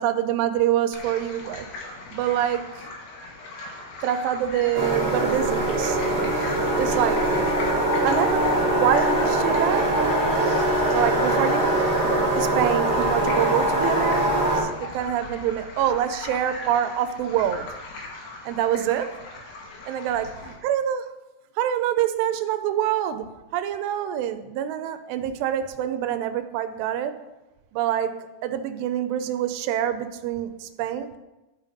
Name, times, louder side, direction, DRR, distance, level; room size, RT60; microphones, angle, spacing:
voice 1, 0.0-1.7 2.1-2.7 4.0-6.0 6.8-7.2 8.0-8.5 8.8-9.9 10.9-11.7 12.3-17.7 18.4-19.1 19.9-20.3 20.6-21.1 21.6-23.3 23.5-27.1 27.7-28.1 28.4-31.2, right 10 dB, 90° right, 9 dB, 2.8 m, -25 dB
sound 1, 0.9-20.5, left 3 dB, 80° left, 3.6 m, -39 dB
sound 2, 4.7-14.6, right 1 dB, 25° right, 2.3 m, -22 dB
11.5 x 5.8 x 5.2 m, 1.0 s
omnidirectional pair, 4.8 m